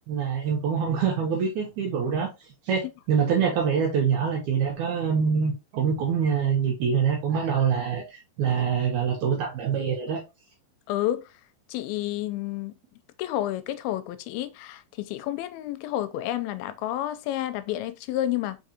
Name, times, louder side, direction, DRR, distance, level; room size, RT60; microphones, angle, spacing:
voice 1, 0.1-2.3 2.6-10.2, right 7 dB, 75° right, 1.8 m, -25 dB
voice 2, 10.9-11.3 11.7-12.8 13.2-18.6, left 13 dB, 85° left, 2.4 m, -30 dB
5.2 x 3.7 x 2.8 m
omnidirectional pair, 4.3 m